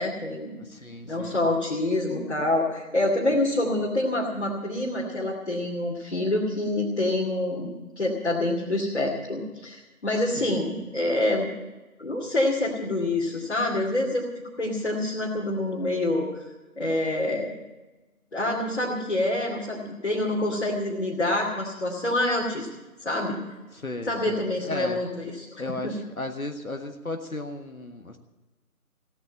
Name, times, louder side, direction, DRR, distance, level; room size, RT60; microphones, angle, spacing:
voice 1, 0.0-0.6 1.0-7.7 8.0-11.5 12.0-14.3 14.6-16.3 16.8-17.5 18.3-22.7 23.0-23.4 24.0-26.0, left 1 dB, 45° left, -4 dB, 2.7 m, -26 dB
voice 2, 0.6-1.4 10.4-10.5 23.7-25.0 25.6-28.2, left 2 dB, 65° left, 5 dB, 1.5 m, -35 dB
17.0 x 8.6 x 9.2 m, 1.1 s
figure-of-eight pair, 165°, 45 cm